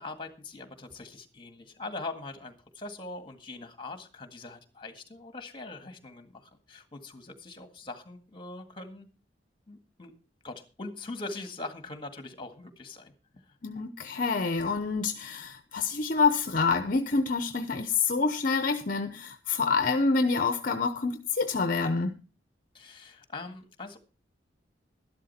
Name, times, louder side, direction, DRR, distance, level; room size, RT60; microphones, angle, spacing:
voice 1, 0.0-9.1 9.7-10.1 10.4-13.6 22.7-24.0, left 2 dB, 25° left, 1.8 m, -42 dB
voice 2, 13.6-22.2, left 4 dB, 50° left, 0.8 m, -27 dB
12.5 x 12.0 x 4.3 m
head